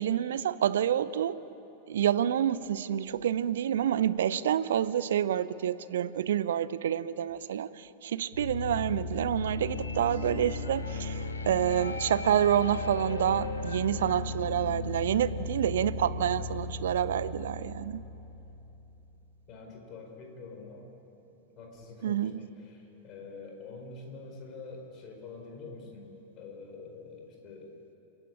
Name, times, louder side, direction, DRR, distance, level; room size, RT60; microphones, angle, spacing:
voice 1, 0.0-1.3 1.9-18.0 22.0-22.4, right 10 dB, 60° right, 16 dB, 0.7 m, -28 dB
sound 1, 8.3-19.2, left 3 dB, 75° left, 1.7 m, -36 dB
voice 2, 19.5-20.9 21.3-27.7, left 3 dB, 35° left, 2 dB, 4.9 m, -46 dB
29.0 x 11.0 x 9.9 m, 3.0 s
figure-of-eight pair, 90°, 0 cm